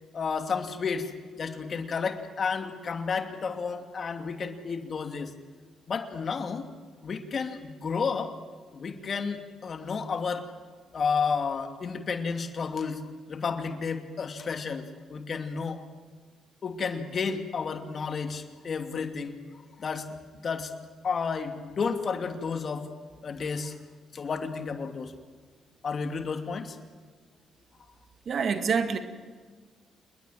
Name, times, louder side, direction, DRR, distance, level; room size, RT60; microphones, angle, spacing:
voice 1, 0.1-1.1 1.4-5.3 5.9-6.7 7.0-8.3 8.7-10.5 10.9-15.8 16.6-19.4 19.8-20.1 20.4-20.7 21.0-22.9 23.2-23.8 24.1-25.1 25.8-26.8, left 5 dB, 50° left, 6 dB, 2.8 m, -31 dB
voice 2, 28.3-29.0, right 6 dB, 60° right, 8 dB, 2.2 m, -26 dB
28.0 x 21.0 x 7.7 m, 1.5 s
supercardioid pair, 60°, 0 cm